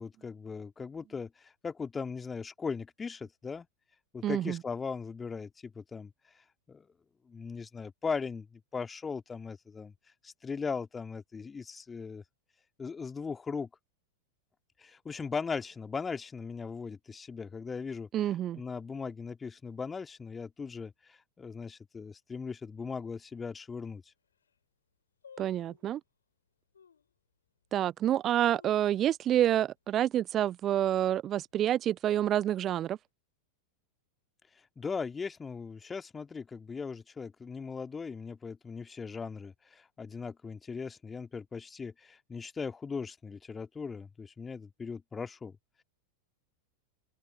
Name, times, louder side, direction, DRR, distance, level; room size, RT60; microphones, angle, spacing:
voice 1, 0.0-3.7 4.1-6.1 6.7-6.9 7.3-9.9 10.2-12.2 12.8-13.7 14.8-18.1 18.5-24.0 34.8-45.6, left 5 dB, 15° left, 2.4 m, -38 dB
voice 2, 4.2-4.6 18.1-18.6 25.4-26.0 27.7-33.0, right 11 dB, 30° right, 0.4 m, -28 dB
sound 1, 23.2-23.3 23.9-24.0 24.2-24.6 25.2-26.0 26.7-27.1 27.7-27.8 28.3-29.4 29.7-29.8 30.1-30.5 30.9-31.3 31.9-32.7 32.9-33.0, left 7 dB, 70° left, 3.7 m, -57 dB
open air
figure-of-eight pair, 90°, 0 cm